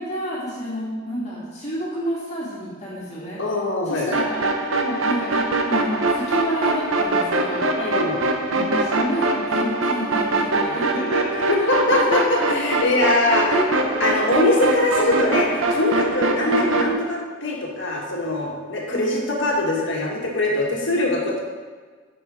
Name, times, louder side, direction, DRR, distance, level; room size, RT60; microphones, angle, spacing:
voice 1, 0.0-3.4 3.9-4.3 4.8-7.6 8.5-11.5 12.0-13.1 13.5-14.1 15.0-15.1 16.5-16.6 18.9-19.2, equal, 35° left, -6 dB, 2.4 m, -30 dB
voice 2, 3.4-4.1 7.8-8.2 11.5-21.4, left 2 dB, 60° left, -2 dB, 1.8 m, -22 dB
sound 1, 4.1-16.9, right 2 dB, 80° right, 0.9 m, -23 dB
9.0 x 5.8 x 5.0 m, 1.5 s
head